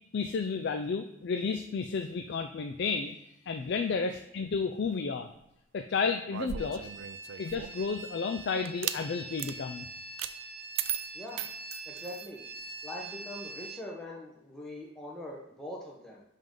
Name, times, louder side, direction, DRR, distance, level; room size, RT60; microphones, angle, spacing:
voice 1, 0.1-3.2 3.5-5.3 5.7-6.9 7.4-9.8, left 5 dB, 60° left, 6 dB, 0.4 m, -32 dB
sound 1, 6.3-7.9 8.6-9.0 9.4-9.6 10.2-10.3 10.8-12.3, right 11 dB, 80° right, 0.4 m, -36 dB
sound 2, 6.6-13.8, right 2 dB, 55° right, 0.9 m, -44 dB
voice 2, 11.1-11.5 11.9-12.4 12.8-16.2, left 1 dB, 5° left, -4 dB, 0.9 m, -42 dB
10.5 x 3.6 x 3.8 m, 0.84 s
head